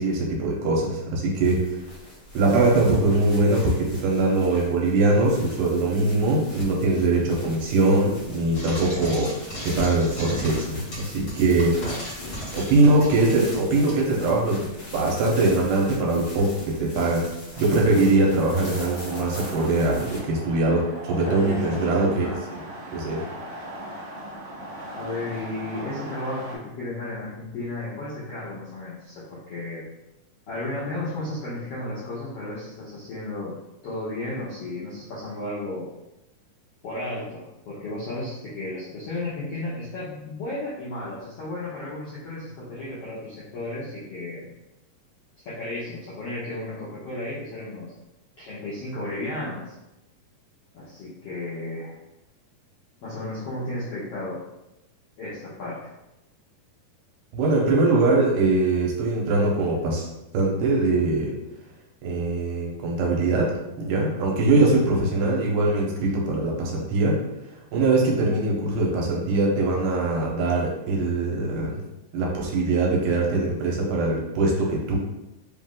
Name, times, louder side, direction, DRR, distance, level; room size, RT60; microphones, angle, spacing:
voice 1, 0.0-1.8 2.3-9.3 9.6-11.8 12.5-22.3 22.5-23.2 57.3-60.1 60.3-61.3 62.0-67.2 67.7-71.8 72.1-75.0, right 2 dB, 80° right, -2 dB, 2.4 m, -22 dB
sound 1, 1.4-20.2, left 1 dB, 85° left, 0.8 m, -42 dB
Frying (food), 8.5-14.0, equal, 40° left, 1.6 m, -36 dB
sound 2, 17.5-26.6, right 1 dB, 60° right, 1.4 m, -39 dB
voice 2, 21.2-22.4 24.9-29.8 30.5-33.6 33.8-35.9 36.8-44.5 45.4-47.9 48.4-49.7 50.7-52.0 53.0-54.4 55.2-55.9, left 2 dB, 70° left, -9 dB, 1.4 m, -33 dB
5.1 x 2.5 x 3.6 m, 0.93 s
omnidirectional pair, 3.9 m